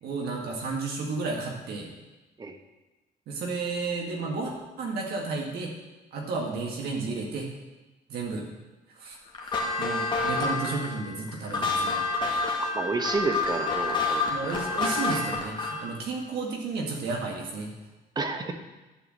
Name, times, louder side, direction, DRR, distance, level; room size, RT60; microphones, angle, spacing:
voice 1, 0.0-1.9 3.3-5.7 6.1-7.5 8.1-8.5 9.0-9.2 9.4-12.0 14.3-17.7, right 3 dB, 70° right, -1 dB, 1.9 m, -32 dB
sound 1, 9.3-15.9, left 3 dB, 30° left, 2.0 m, -28 dB
voice 2, 12.7-14.3 18.2-18.5, right 3 dB, 25° right, 6 dB, 1.1 m, -30 dB
11.5 x 4.7 x 7.6 m, 1.1 s
cardioid pair, 110°, 17 cm